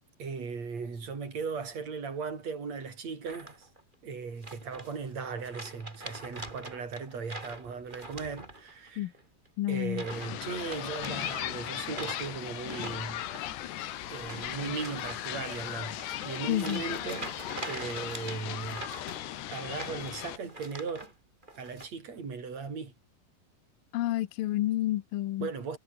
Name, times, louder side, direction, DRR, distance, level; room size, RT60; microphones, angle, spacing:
voice 1, 0.2-3.7 4.0-9.1 9.7-13.3 14.1-17.3 17.7-18.9 19.5-21.1 21.6-22.9 25.4-25.8, right 5 dB, 40° right, 6.2 m, -37 dB
sound 1, 3.2-3.8 4.4-5.1 5.4-8.9 9.1-9.5 9.9-10.3 10.6-21.1 21.4-21.9, right 1 dB, 10° right, 4.4 m, -44 dB
voice 2, 9.6-10.0 16.5-16.8 23.9-25.5, left 15 dB, 70° left, 2.5 m, -29 dB
sound 2, 10.1-20.4, left 13 dB, 90° left, 3.8 m, -37 dB
omnidirectional pair, 4.8 m